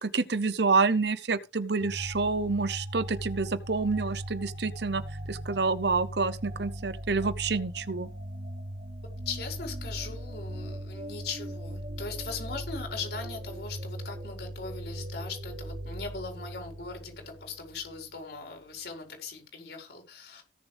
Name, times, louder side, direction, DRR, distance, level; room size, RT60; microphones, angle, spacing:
voice 1, 0.0-5.0 5.3-8.1, right 4 dB, 65° right, 0.9 m, -28 dB
sound 1, 1.8-18.1, right 1 dB, 40° right, 2.5 m, -39 dB
voice 2, 9.2-20.4, left 4 dB, 65° left, 5.0 m, -39 dB
17.5 x 7.3 x 3.5 m
head